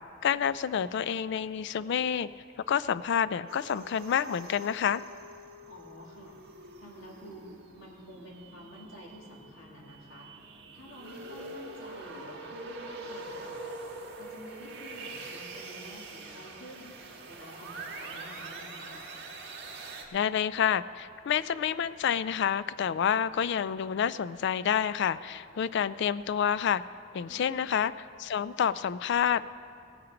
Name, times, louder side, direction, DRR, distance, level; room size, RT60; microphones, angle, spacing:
voice 1, 0.2-2.3 2.7-5.0 20.1-26.8 27.1-27.9 28.2-29.5, left 8 dB, 60° left, 16 dB, 0.3 m, -28 dB
sound 1, 3.5-20.1, right 2 dB, 55° right, 1.5 m, -44 dB
voice 2, 5.6-6.4 6.8-10.3 10.7-13.7 14.2-16.9 17.3-19.0 27.3-27.5, equal, 75° left, -3 dB, 2.6 m, -49 dB
17.0 x 8.8 x 5.1 m, 2.3 s
head